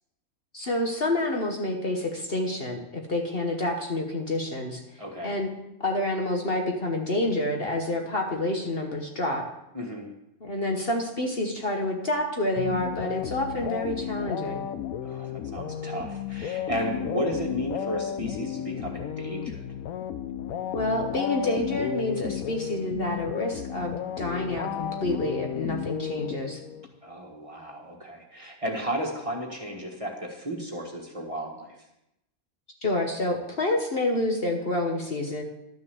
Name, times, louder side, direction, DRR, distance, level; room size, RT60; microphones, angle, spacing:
voice 1, 0.5-4.8 5.2-5.5 5.8-9.5 10.4-14.6 17.0-17.2 20.7-26.6 32.8-35.4, left 1 dB, 45° left, 2 dB, 1.3 m, -28 dB
voice 2, 5.0-5.3 9.7-10.1 15.0-19.6 27.0-31.7, equal, 25° right, 0 dB, 1.6 m, -33 dB
sound 1, 12.6-26.9, left 9 dB, 80° left, 1.1 m, -33 dB
12.0 x 6.6 x 7.0 m, 0.87 s
omnidirectional pair, 1.5 m